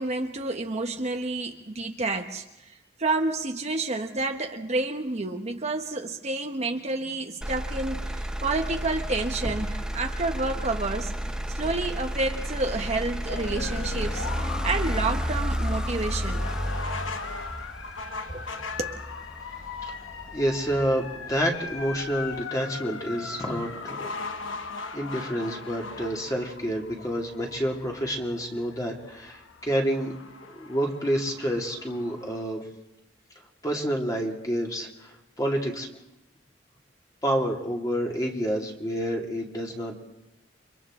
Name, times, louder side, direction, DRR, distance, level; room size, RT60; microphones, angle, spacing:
voice 1, 0.0-11.1 11.5-16.4 18.3-18.5 18.8-19.0, right 2 dB, 35° right, 1.1 m, -29 dB
Motor vehicle (road), 7.4-21.4 21.9-22.4, equal, 5° right, 0.7 m, -32 dB
sound 1, 13.3-32.4, left 4 dB, 85° left, 1.0 m, -38 dB
voice 2, 20.3-24.1 24.9-30.1 30.5-32.6 33.6-35.9 37.2-39.9, equal, 20° left, 2.4 m, -28 dB
29.5 x 24.5 x 3.7 m
head